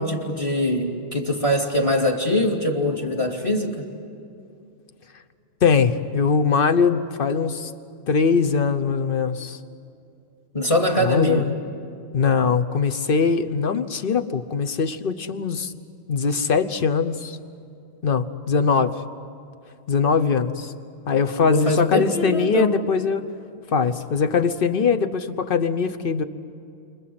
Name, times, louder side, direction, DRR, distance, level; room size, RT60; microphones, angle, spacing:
voice 1, 0.0-3.9 10.5-11.5 21.5-22.8, left 1 dB, 25° left, 2 dB, 2.5 m, -23 dB
voice 2, 5.6-7.7 8.1-9.6 11.0-11.5 12.1-15.7 16.1-17.4 18.0-19.0 19.9-20.7 21.1-23.2 23.7-26.2, left 5 dB, 50° left, 11 dB, 1.1 m, -21 dB
29.5 x 25.5 x 7.7 m, 2.5 s
omnidirectional pair, 1.3 m